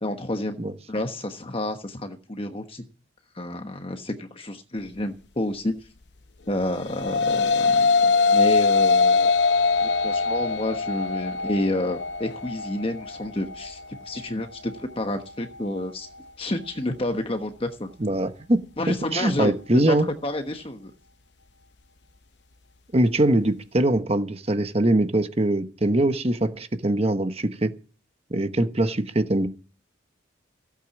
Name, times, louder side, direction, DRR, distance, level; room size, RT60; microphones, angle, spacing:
voice 1, 0.0-0.6 0.9-2.8 3.3-5.7 6.5-9.3 9.8-13.8 14.0-16.1 16.4-17.9 18.8-20.0 20.2-20.9, left 1 dB, 30° left, 1.2 m, -29 dB
sound 1, 6.7-15.8, left 4 dB, 65° left, 0.7 m, -23 dB
voice 2, 18.0-18.6 18.9-20.1 22.9-27.7 28.3-29.5, right 1 dB, 30° right, 1.0 m, -22 dB
15.5 x 8.7 x 7.2 m
head